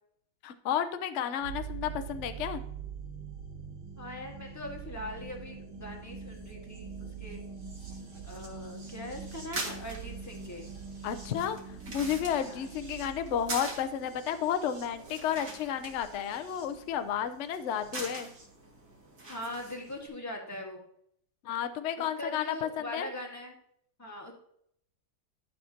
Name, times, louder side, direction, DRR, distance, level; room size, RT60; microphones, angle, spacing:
voice 1, 0.4-2.6 11.0-11.6 11.9-18.3 21.4-23.1, left 9 dB, 70° left, 9 dB, 0.6 m, -32 dB
sound 1, 1.4-18.4 19.6-19.7, right 6 dB, 70° right, 2.5 m, -44 dB
voice 2, 4.0-7.4 8.2-10.8 12.4-12.7 19.3-20.8 22.2-23.6 24.0-24.3, left 1 dB, 10° left, -1 dB, 1.4 m, -41 dB
sound 2, 9.3-20.1, right 2 dB, 50° right, 2.4 m, -44 dB
12.0 x 6.5 x 2.8 m, 0.70 s
omnidirectional pair, 2.1 m